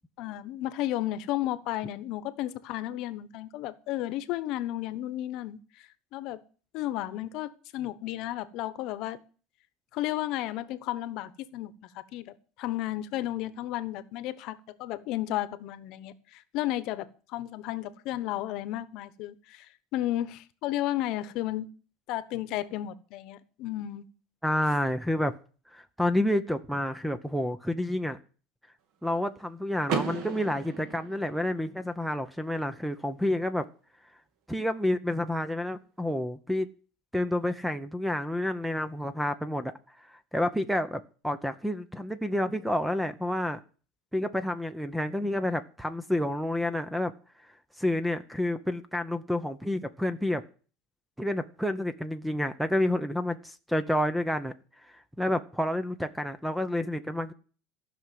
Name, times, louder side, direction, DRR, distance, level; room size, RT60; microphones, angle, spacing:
voice 1, 0.2-6.4 6.7-9.2 9.9-19.7 19.9-21.7 22.1-24.0, left 14 dB, 50° left, 1.1 m, -33 dB
voice 2, 24.4-25.3 25.7-28.2 29.0-33.6 34.5-36.7 37.1-39.7 40.0-43.6 44.1-47.1 47.8-50.4 51.2-54.5 55.2-57.3, left 1 dB, ahead, 0.7 m, -29 dB
Car / Door, 29.9-31.8, right 6 dB, 55° right, 2.6 m, -34 dB
15.0 x 6.2 x 9.4 m
cardioid pair, 160°, 0 cm